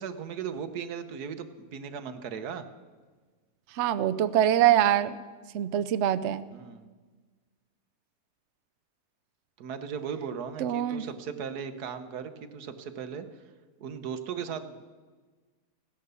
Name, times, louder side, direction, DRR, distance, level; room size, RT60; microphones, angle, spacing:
voice 1, 0.0-2.7 6.5-6.9 9.6-13.3 13.8-14.9, right 7 dB, 85° right, 10 dB, 1.5 m, -37 dB
voice 2, 3.8-5.2 5.5-6.4 10.6-11.0, right 11 dB, 60° right, 13 dB, 0.8 m, -24 dB
16.0 x 10.5 x 6.8 m, 1.4 s
omnidirectional pair, 1.6 m